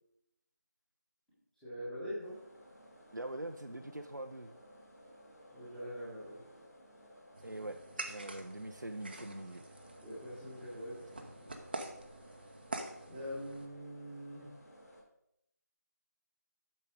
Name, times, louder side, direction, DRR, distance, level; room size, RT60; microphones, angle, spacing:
voice 1, 1.6-2.4 5.5-6.4 10.0-11.3 13.1-14.5, equal, ahead, -14 dB, 1.6 m, -43 dB
sound 1, 2.2-15.0, equal, 60° left, 3.8 m, -58 dB
voice 2, 3.1-4.6 7.4-9.6, right 1 dB, 85° right, 4 dB, 0.8 m, -43 dB
sound 2, 7.3-13.7, right 2 dB, 30° right, 1.0 m, -46 dB
10.5 x 6.8 x 4.9 m, 0.79 s
figure-of-eight pair, 165°, 10 cm